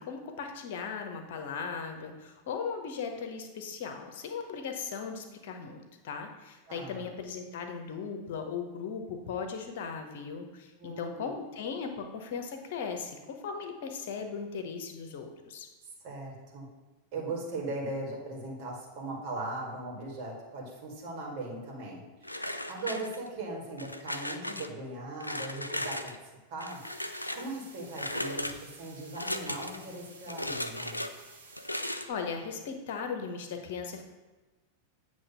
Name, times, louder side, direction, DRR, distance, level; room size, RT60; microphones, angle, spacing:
voice 1, 0.0-15.7 32.1-34.0, left 5 dB, 55° left, 5 dB, 0.9 m, -38 dB
voice 2, 6.7-7.0 10.8-11.3 16.0-16.7 17.1-22.4 22.7-26.1 26.5-26.8 27.3-31.0, right 2 dB, 45° right, -2 dB, 2.0 m, -39 dB
sound 1, 22.2-23.4 23.8-24.7 25.2-26.2 26.6-27.5 27.9-28.6 29.1-29.8 30.3-31.1 31.5-32.1, left 1 dB, 85° left, 0.4 m, -36 dB
sound 2, 26.7-31.7, right 3 dB, 75° right, 1.4 m, -53 dB
8.3 x 3.1 x 5.6 m, 1.2 s
figure-of-eight pair, 90°, 0 cm